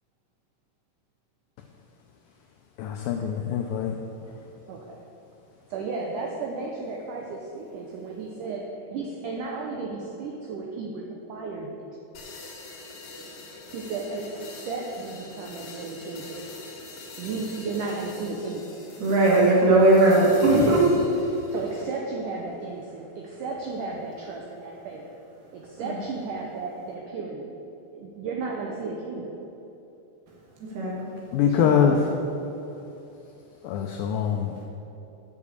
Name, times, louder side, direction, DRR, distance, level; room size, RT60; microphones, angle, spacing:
voice 1, 2.8-4.0 31.3-32.0 33.6-34.5, left 8 dB, 85° left, 3 dB, 2.0 m, -23 dB
voice 2, 4.7-5.0 5.7-11.8 13.7-16.5 17.2-18.8 21.5-25.0 25.5-27.5 27.9-29.4 31.5-32.3, right 3 dB, 90° right, 0 dB, 1.8 m, -34 dB
sound 1, 12.1-22.0, left 3 dB, 55° left, 3.0 m, -44 dB
voice 3, 19.0-20.9 25.8-26.0 30.6-31.3, right 2 dB, 70° right, -4 dB, 3.5 m, -19 dB
8.3 x 7.2 x 8.3 m, 2.9 s
omnidirectional pair, 4.7 m